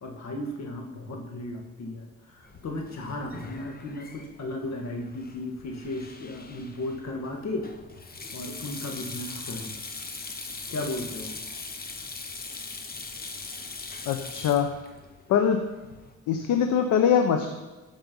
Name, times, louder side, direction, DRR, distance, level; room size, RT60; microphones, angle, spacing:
voice 1, 0.0-7.7 8.3-9.7 10.7-11.3, left 1 dB, 60° left, 2 dB, 2.2 m, -35 dB
Sink (filling or washing), 2.4-16.1, left 3 dB, 30° left, 1.1 m, -41 dB
voice 2, 14.1-14.7 15.3-15.6 16.3-17.5, left 8 dB, 85° left, 5 dB, 0.9 m, -22 dB
15.5 x 5.3 x 5.4 m, 1.1 s
cardioid pair, 90°, 30 cm